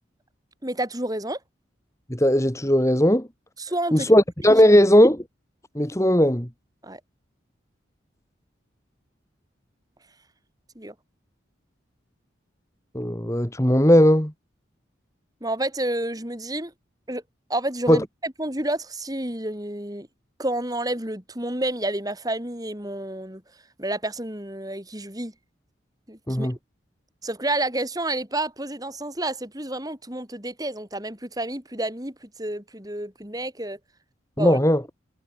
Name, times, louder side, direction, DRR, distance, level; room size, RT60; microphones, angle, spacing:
voice 1, 0.6-1.4 3.6-4.1 6.8-7.0 10.8-10.9 15.4-16.7 17.1-17.2 17.5-20.1 20.4-23.4 23.8-25.3 26.1-26.5 27.2-33.8 34.4-34.6, right 1 dB, 20° right, 4.2 m, -29 dB
voice 2, 2.1-3.3 3.9-5.2 5.7-6.5 12.9-14.3 17.9-18.0 26.3-26.6 34.4-34.8, equal, 15° left, 2.6 m, -18 dB
head